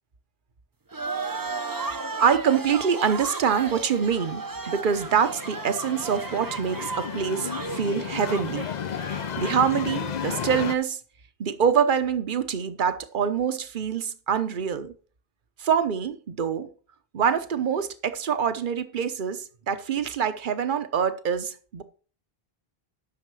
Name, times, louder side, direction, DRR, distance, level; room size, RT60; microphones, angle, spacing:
sound 1, 0.9-9.7, right 4 dB, 25° right, 0.6 m, -35 dB
voice 1, 2.2-8.7 9.0-11.0 11.4-14.9 15.6-16.7 17.1-21.8, right 7 dB, 55° right, 1.0 m, -25 dB
sound 2, 4.4-10.8, left 8 dB, 50° left, 0.6 m, -33 dB
11.5 x 6.5 x 4.8 m
omnidirectional pair, 1.1 m